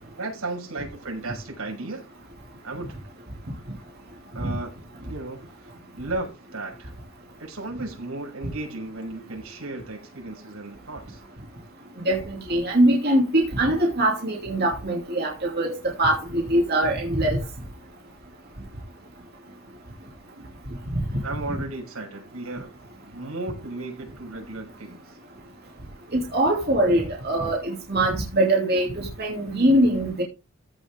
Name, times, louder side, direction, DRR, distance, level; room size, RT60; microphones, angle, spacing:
voice 1, 0.0-2.1 2.6-3.0 4.3-4.7 5.1-6.9 7.4-11.2 21.2-22.7 23.0-25.2, right 2 dB, 90° right, 6.2 m, -35 dB
voice 2, 12.5-17.4 26.1-30.2, right 1 dB, 45° right, 2.7 m, -22 dB
15.0 x 6.3 x 3.7 m
head